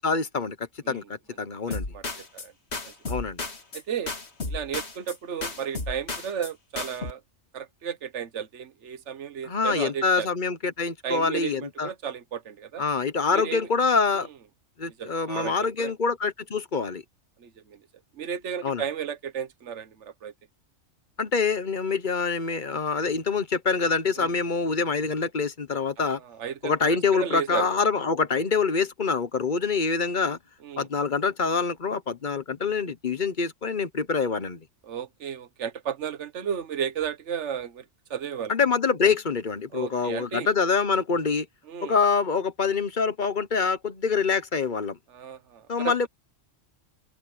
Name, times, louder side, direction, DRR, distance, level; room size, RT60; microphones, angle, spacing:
voice 1, 0.0-1.9 3.1-3.4 9.4-11.9 12.8-14.3 14.8-17.0 18.6-18.8 21.2-26.2 26.6-30.4 30.8-34.6 38.5-41.5 41.8-45.0 45.7-46.1, left 5 dB, 40° left, 1.1 m, -25 dB
sound 1, 1.7-2.5 2.7-5.2 5.4-6.5 6.8-7.1, left 3 dB, 55° left, 2.5 m, -33 dB
voice 2, 1.7-2.5 2.8-3.2 3.7-4.1 4.5-7.2 7.5-10.3 11.0-12.8 13.3-13.7 14.1-14.3 15.0-15.9 17.4-17.8 18.1-20.3 24.2-24.3 26.0-26.7 27.1-27.7 30.6-30.9 34.8-37.8 38.1-38.5 39.7-40.5 41.7-41.9 45.1-46.1, right 8 dB, 65° right, 1.5 m, -34 dB
open air
omnidirectional pair, 1.3 m